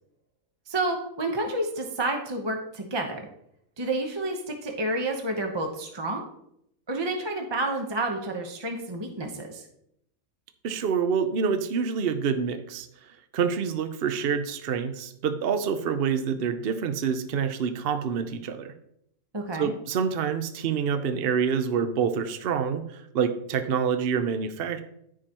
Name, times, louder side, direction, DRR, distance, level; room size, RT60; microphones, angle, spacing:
voice 1, 0.7-3.3 3.8-6.2 6.9-9.6 19.3-19.7, right 2 dB, 20° right, 2 dB, 0.8 m, -30 dB
voice 2, 10.6-12.9 13.3-18.7 19.6-24.8, right 6 dB, 55° right, 9 dB, 0.7 m, -27 dB
14.0 x 4.8 x 2.9 m, 0.75 s
omnidirectional pair, 1.5 m